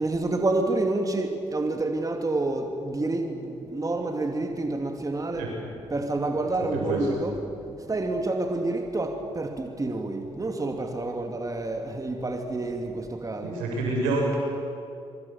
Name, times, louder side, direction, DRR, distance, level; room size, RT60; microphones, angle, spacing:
voice 1, 0.0-5.5 5.9-7.4 7.6-13.6, right 2 dB, 25° right, 4 dB, 2.7 m, -28 dB
voice 2, 13.4-14.4, right 2 dB, 85° right, -1 dB, 6.8 m, -27 dB
24.5 x 24.5 x 7.3 m, 2.6 s
hypercardioid pair, 50°, 13 cm